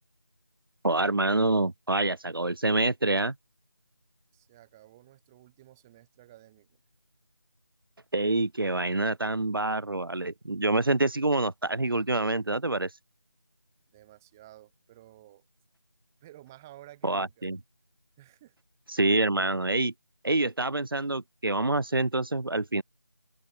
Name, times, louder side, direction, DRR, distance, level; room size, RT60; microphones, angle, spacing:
voice 1, 0.8-3.3 8.1-12.9 17.0-17.6 18.9-19.9 20.2-22.8, right 2 dB, 55° right, 1.7 m, -26 dB
voice 2, 4.3-6.8 13.9-15.4 16.2-17.5 18.2-18.5, right 15 dB, 5° right, 3.9 m, -53 dB
open air
figure-of-eight pair, 175°, 14 cm